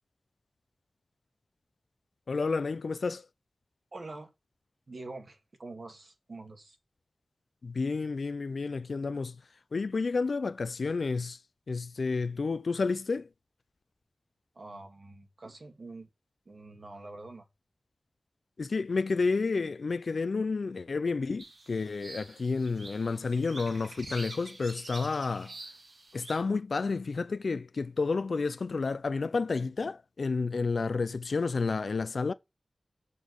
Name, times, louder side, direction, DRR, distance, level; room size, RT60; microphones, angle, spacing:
voice 1, 2.3-3.3 7.6-9.3 9.7-11.4 11.7-13.3 18.6-25.5 26.1-32.3, left 4 dB, 75° left, 0.5 m, -30 dB
voice 2, 3.9-4.3 4.9-6.8 14.5-16.1 16.5-17.5, right 2 dB, 60° right, 2.2 m, -45 dB
sound 1, 21.4-26.4, right 2 dB, 80° right, 2.2 m, -47 dB
7.1 x 5.5 x 6.5 m
wide cardioid pair, 80°, 0 cm